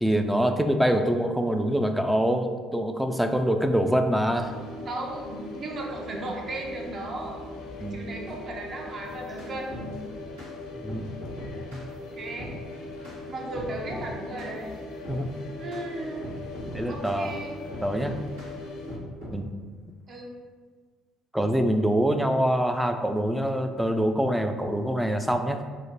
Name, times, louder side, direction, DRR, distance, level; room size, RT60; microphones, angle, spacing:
voice 1, 0.0-4.5 7.8-8.0 10.8-11.1 11.7-11.8 15.1-15.3 16.7-17.3 17.8-18.1 19.3-19.5 21.3-25.6, equal, 5° right, 6 dB, 0.3 m, -25 dB
sound 1, 4.3-19.0, left 2 dB, 70° left, 0.6 m, -40 dB
voice 2, 4.9-7.4 7.9-9.9 12.1-12.6 13.3-14.7 15.6-16.2 16.9-17.5 20.1-20.3, right 2 dB, 45° right, 0 dB, 0.7 m, -35 dB
sound 2, 9.0-9.9 10.4-10.5 10.9-11.9 12.4-12.6 13.0-13.2 13.5-14.1 14.4-14.6 15.0-15.2 15.7-15.8 16.2-17.2 17.7-18.5 18.9-19.4, equal, 90° right, 1.2 m, -40 dB
3.2 x 2.1 x 3.8 m, 1.5 s
hypercardioid pair, 55°, 0 cm